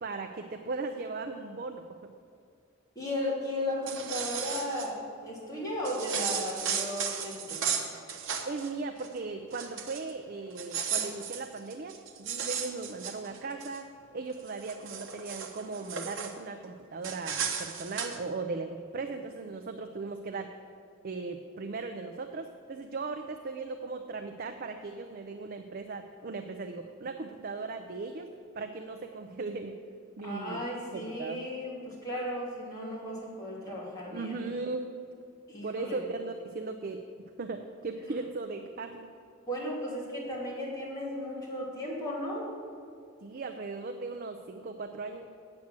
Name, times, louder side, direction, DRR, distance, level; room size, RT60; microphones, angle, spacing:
voice 1, 0.0-1.8 8.4-13.8 14.1-20.5 21.0-28.3 28.5-29.8 30.2-30.6 30.9-31.4 34.1-34.9 35.6-37.0 37.4-39.1 43.2-45.3, right 3 dB, 45° right, 5 dB, 0.5 m, -38 dB
voice 2, 2.9-7.8 30.2-34.4 35.5-36.0 38.1-38.2 39.5-42.5, left 1 dB, 15° left, -7 dB, 3.1 m, -35 dB
sound 1, 3.7-4.9 5.8-8.7 9.0-9.2 9.5-10.1 10.5-13.8 14.3-16.3 17.0-18.2, right 7 dB, 65° right, 1.0 m, -35 dB
8.7 x 7.4 x 7.5 m, 2.4 s
head